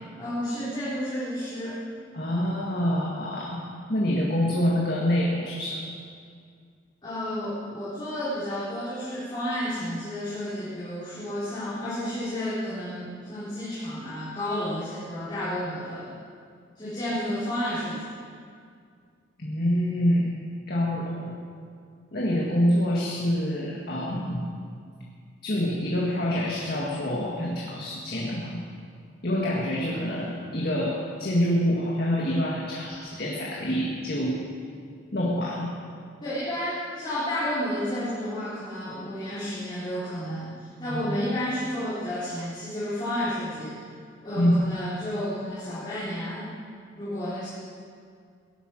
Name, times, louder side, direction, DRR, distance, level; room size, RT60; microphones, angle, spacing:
voice 1, 0.2-1.8 7.0-16.1 16.8-18.1 36.2-43.8 44.2-46.5 47.0-47.5, equal, 25° left, -12 dB, 4.0 m, -31 dB
voice 2, 2.1-3.6 3.9-5.9 19.4-20.3 20.7-21.4 22.1-24.5 25.4-28.6 29.2-34.4 35.1-35.7 40.9-41.1 44.4-44.6, equal, 50° left, -4 dB, 1.9 m, -26 dB
18.0 x 11.5 x 6.5 m, 2.2 s
head